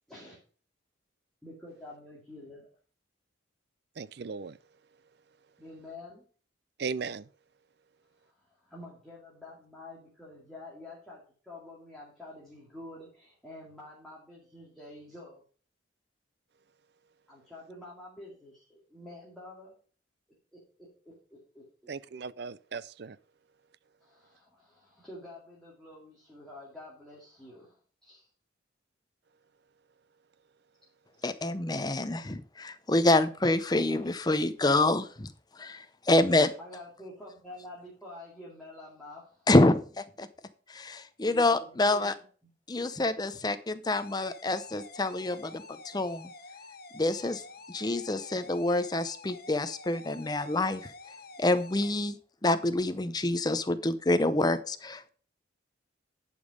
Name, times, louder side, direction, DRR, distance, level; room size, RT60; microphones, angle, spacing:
voice 1, 1.4-2.7 5.6-6.3 8.2-15.4 17.3-19.7 20.5-21.9 24.0-28.3 36.6-39.5 41.3-42.1 43.1-43.2 48.2-48.3, left 1 dB, ahead, 2.4 m, -48 dB
voice 2, 4.0-4.6 6.8-7.3 21.9-23.2, right 5 dB, 55° right, 0.4 m, -37 dB
voice 3, 31.2-35.3 35.6-36.5 39.5-40.3 40.7-42.1 42.7-46.3 46.9-47.4 47.7-50.9 51.4-52.2 52.4-55.1, left 2 dB, 20° left, 0.6 m, -27 dB
sound 1, 43.9-51.9, left 3 dB, 50° left, 1.1 m, -49 dB
11.0 x 5.3 x 5.1 m
head